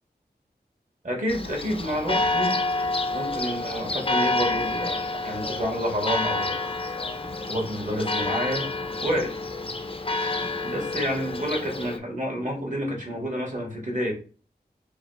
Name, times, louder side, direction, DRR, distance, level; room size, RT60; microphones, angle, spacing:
voice 1, 1.0-2.6 3.1-6.5 7.5-8.7 9.0-9.3 10.4-14.1, equal, 45° right, 0 dB, 1.5 m, -29 dB
Church bell, 1.3-12.0, left 2 dB, 35° left, 0.5 m, -28 dB
3.2 x 2.2 x 4.0 m, 0.39 s
wide cardioid pair, 45°, 17 cm